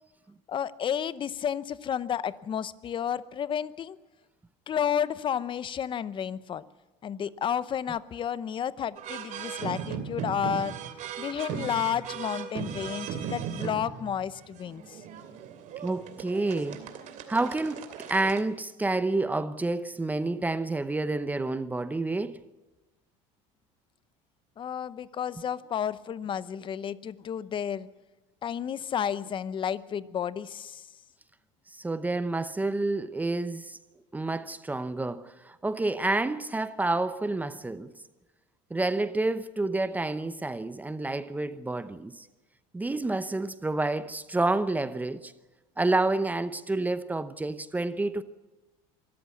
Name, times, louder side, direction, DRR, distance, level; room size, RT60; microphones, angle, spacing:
voice 1, 0.5-4.0 4.7-6.6 7.0-10.7 11.2-15.0 24.6-27.9 28.4-30.9, left 8 dB, 30° left, 0.8 m, -31 dB
sound 1, 9.0-18.4, right 8 dB, 55° right, 2.7 m, -37 dB
voice 2, 15.8-16.9 17.3-22.4 31.7-33.8 34.1-37.9 38.7-42.3 42.7-45.3 45.8-48.2, right 2 dB, 10° right, 0.8 m, -29 dB
24.5 x 14.0 x 8.4 m
cardioid pair, 125°, 16 cm